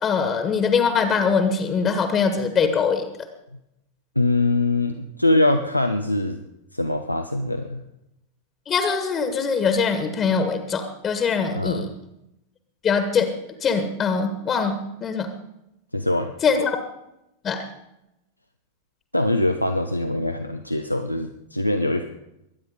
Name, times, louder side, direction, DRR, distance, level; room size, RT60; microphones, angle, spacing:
voice 1, 0.0-3.0 8.7-11.9 12.8-13.3 13.6-15.3 16.4-16.8 17.4-17.6, left 5 dB, 25° left, 8 dB, 1.6 m, -22 dB
voice 2, 4.2-6.4 6.7-7.8 11.5-11.9 15.9-16.3 19.1-22.1, left 2 dB, 90° left, 6 dB, 0.7 m, -23 dB
22.5 x 9.5 x 5.0 m, 0.86 s
figure-of-eight pair, 90°, 0 cm